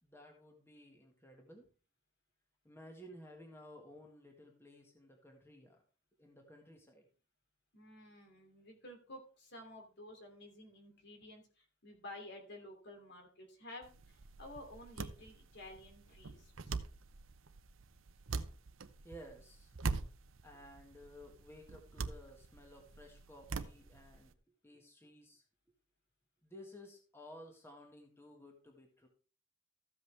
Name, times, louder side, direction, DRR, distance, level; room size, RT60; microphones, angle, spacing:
voice 1, 0.0-1.7 2.6-5.8 6.2-7.1 19.0-19.8 20.4-24.3 24.6-25.4 26.4-29.1, equal, 10° left, 2 dB, 1.7 m, -55 dB
voice 2, 7.7-16.8, left 1 dB, 55° left, 4 dB, 2.9 m, -52 dB
sound 1, 13.8-24.3, right 4 dB, 75° right, 0.8 m, -44 dB
14.0 x 8.0 x 3.4 m, 0.37 s
head